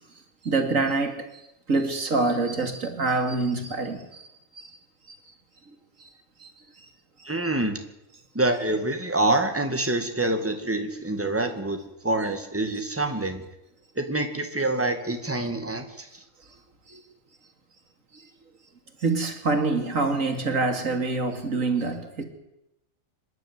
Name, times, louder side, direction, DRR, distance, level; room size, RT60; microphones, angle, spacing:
voice 1, 0.4-1.4 1.7-4.8 5.1-5.2 6.0-6.1 6.4-6.5 6.8-6.9 7.2-7.3 16.9-17.0 18.1-18.2 19.0-22.2, right 3 dB, 70° right, 2.7 m, -26 dB
voice 2, 7.2-7.8 8.3-13.4 14.0-16.1, right 2 dB, 10° right, 2.0 m, -26 dB
25.5 x 11.0 x 9.5 m
omnidirectional pair, 1.4 m